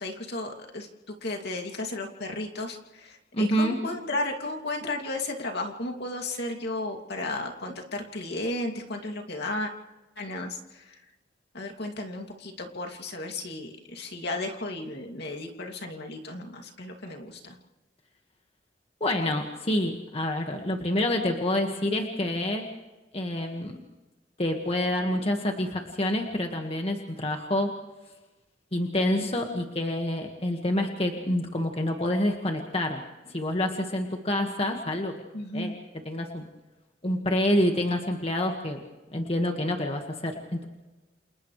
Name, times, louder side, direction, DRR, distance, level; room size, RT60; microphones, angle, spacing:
voice 1, 0.0-9.7 10.2-11.0 11.5-17.6 35.3-35.8, left 2 dB, 60° left, 2 dB, 2.7 m, -34 dB
voice 2, 3.3-3.8 19.0-22.7 23.1-23.8 24.4-27.7 28.7-35.1 35.5-35.7 36.1-36.5 37.0-38.8 39.1-40.6, left 1 dB, 35° left, 2 dB, 1.8 m, -27 dB
29.0 x 28.0 x 3.3 m, 1.1 s
head